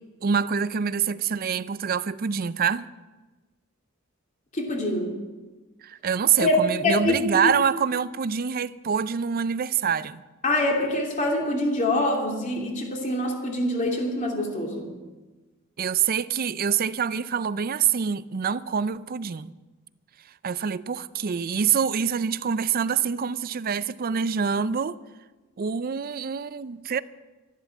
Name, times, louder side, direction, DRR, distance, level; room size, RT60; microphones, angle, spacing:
voice 1, 0.2-2.9 5.8-10.2 15.8-19.5 20.4-25.0 25.6-27.0, right 7 dB, 45° right, 0.4 m, -26 dB
voice 2, 4.5-5.1 6.4-7.1 7.4-7.5 10.4-15.0, left 1 dB, 40° left, 2.7 m, -25 dB
13.0 x 11.5 x 7.2 m
head